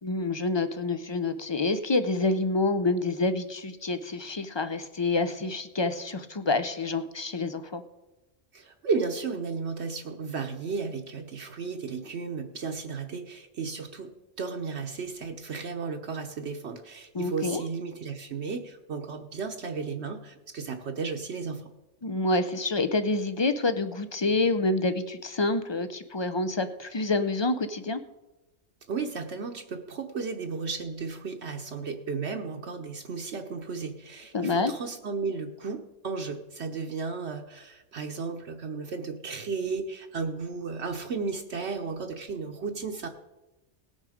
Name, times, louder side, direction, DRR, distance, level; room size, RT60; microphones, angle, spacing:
voice 1, 0.0-7.8 17.1-17.6 22.0-28.0 34.3-34.7, left 3 dB, 40° left, 11 dB, 0.4 m, -27 dB
voice 2, 8.5-21.7 28.9-43.1, right 5 dB, 65° right, 4 dB, 1.1 m, -34 dB
18.5 x 6.4 x 5.0 m, 1.0 s
omnidirectional pair, 1.3 m